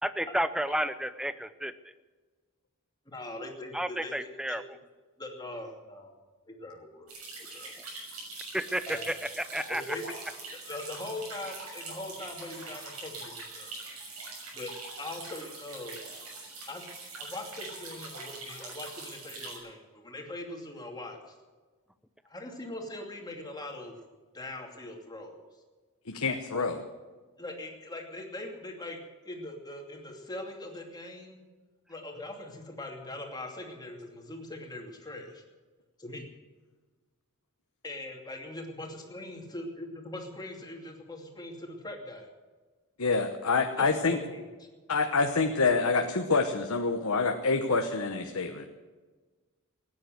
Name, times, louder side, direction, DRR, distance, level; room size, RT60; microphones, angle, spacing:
voice 1, 0.0-1.7 3.7-4.6 8.5-10.0, right 1 dB, 5° right, 12 dB, 0.7 m, -31 dB
voice 2, 3.1-4.6 5.2-6.1 6.5-7.1 7.4-7.7 8.9-9.1 9.7-10.2 10.7-13.7 14.5-14.7 15.0-16.0 16.7-16.8 17.2-21.3 22.2-23.9 24.3-25.4 26.5-26.7 27.4-31.4 31.9-35.4 36.0-36.3 37.8-42.3 43.8-44.7, left 2 dB, 20° left, 1 dB, 2.7 m, -41 dB
sound 1, 7.1-19.6, right 3 dB, 80° right, 6.5 m, -43 dB
voice 3, 26.1-26.8 43.0-44.2 44.9-48.7, left 4 dB, 75° left, 4 dB, 1.1 m, -27 dB
17.0 x 10.0 x 7.8 m, 1.4 s
head